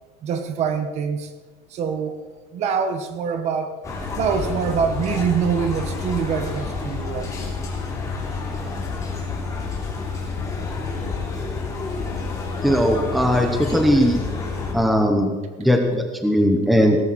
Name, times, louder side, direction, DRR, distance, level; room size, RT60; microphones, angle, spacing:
voice 1, 0.2-1.3 1.7-2.2 2.5-3.8 4.1-7.4, right 6 dB, 35° right, 8 dB, 1.2 m, -24 dB
sound 1, 3.8-14.7, left 4 dB, 15° left, 2.9 m, -29 dB
voice 2, 12.6-14.2 14.7-17.0, equal, ahead, 4 dB, 0.8 m, -19 dB
18.0 x 13.5 x 4.1 m, 1.3 s
cardioid pair, 180°, 19 cm